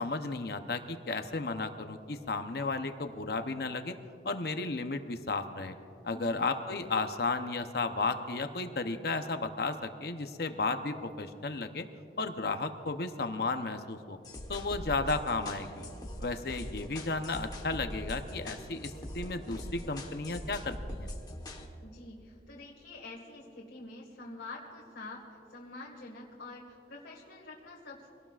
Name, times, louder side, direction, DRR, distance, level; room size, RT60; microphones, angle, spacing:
voice 1, 0.0-3.9 4.2-5.7 6.0-11.9 12.2-14.2 14.5-15.9 16.2-21.1, left 3 dB, 60° left, 7 dB, 0.8 m, -34 dB
voice 2, 6.1-6.5 21.8-28.1, left 2 dB, 85° left, -3 dB, 1.7 m, -47 dB
sound 1, 14.2-21.7, left 1 dB, 20° left, 1.2 m, -42 dB
24.5 x 18.0 x 2.5 m, 2.5 s
head